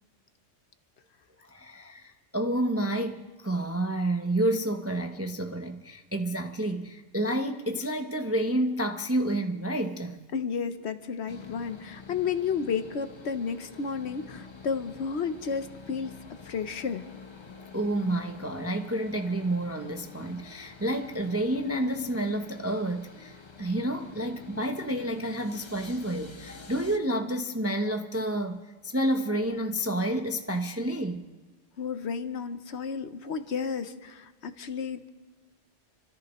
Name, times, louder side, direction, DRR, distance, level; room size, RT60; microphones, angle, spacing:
voice 1, 1.4-10.2 17.7-31.2, right 1 dB, 15° right, 0.5 m, -29 dB
voice 2, 10.3-16.1 16.4-17.0 31.8-35.1, left 6 dB, 65° left, 1.0 m, -32 dB
sound 1, 11.3-27.0, left 5 dB, 25° left, 0.8 m, -48 dB
28.5 x 14.0 x 3.0 m
omnidirectional pair, 1.3 m